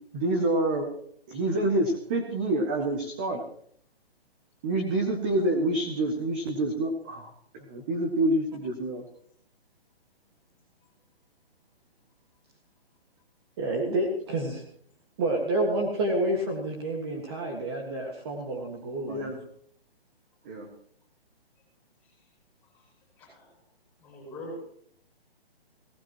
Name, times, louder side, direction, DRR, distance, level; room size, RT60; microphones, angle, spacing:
voice 1, 0.1-0.9 1.3-3.5 4.6-9.0 19.1-19.4 20.5-20.7, right 1 dB, 10° right, 3 dB, 0.6 m, -27 dB
voice 2, 13.6-14.6 15.2-19.3, right 1 dB, 25° right, 1 dB, 1.8 m, -29 dB
voice 3, 22.7-23.6 24.0-24.7, equal, 5° left, -3 dB, 7.7 m, -43 dB
19.0 x 18.0 x 3.0 m, 0.62 s
hypercardioid pair, 170°, 31 cm